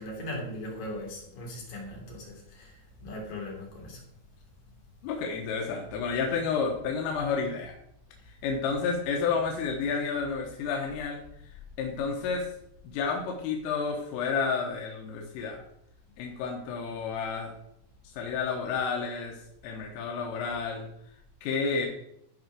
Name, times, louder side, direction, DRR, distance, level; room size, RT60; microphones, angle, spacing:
voice 1, 0.0-2.8 3.0-4.0, left 1 dB, 45° left, -2 dB, 4.2 m, -39 dB
voice 2, 5.0-7.8 8.3-11.2 11.8-12.5 12.8-15.6 16.2-17.5 18.1-19.4 19.6-20.9 21.4-21.9, left 5 dB, 85° left, 1 dB, 3.8 m, -30 dB
15.0 x 5.2 x 6.2 m, 0.76 s
omnidirectional pair, 5.8 m